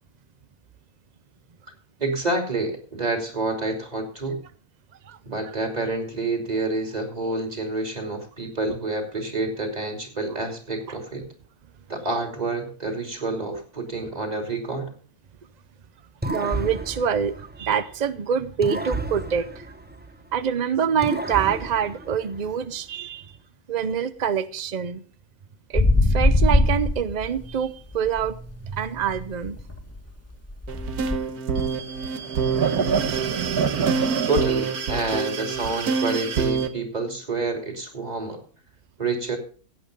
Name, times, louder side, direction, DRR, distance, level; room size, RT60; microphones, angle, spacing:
voice 1, 2.0-4.4 5.2-11.3 11.9-14.9 34.3-38.4 39.0-39.4, right 2 dB, 25° right, 4 dB, 3.0 m, -28 dB
sound 1, 16.2-18.1 18.6-20.5 21.0-22.7, right 2 dB, 10° right, 0.5 m, -32 dB
voice 2, 16.3-19.7 20.3-23.3 23.7-25.0 25.7-28.4 28.7-29.6, right 7 dB, 55° right, 13 dB, 0.4 m, -26 dB
sound 2, 25.7-27.6 27.9-31.1, left 1 dB, 10° left, 1.7 m, -22 dB
sound 3, 30.7-36.7, right 6 dB, 80° right, 1.7 m, -25 dB
16.5 x 8.6 x 5.2 m, 0.42 s
omnidirectional pair, 1.6 m